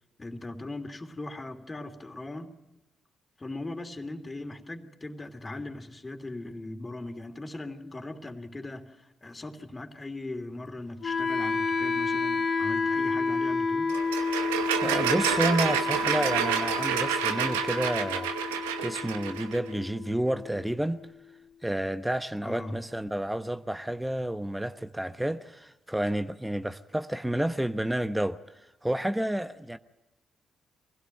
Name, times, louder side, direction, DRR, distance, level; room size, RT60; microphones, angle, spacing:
voice 1, 0.2-2.5 3.4-13.9 22.4-22.8, left 2 dB, 25° left, 3.0 m, -39 dB
Wind instrument woodwind instrument, 11.0-21.0, left 4 dB, 50° left, 2.6 m, -30 dB
sound 1, 13.9-19.6, right 9 dB, 85° right, 0.9 m, -29 dB
voice 2, 14.8-21.0 21.6-28.4 28.8-29.8, right 1 dB, 10° right, 1.1 m, -30 dB
24.0 x 16.5 x 9.2 m
hypercardioid pair, 45°, 0 cm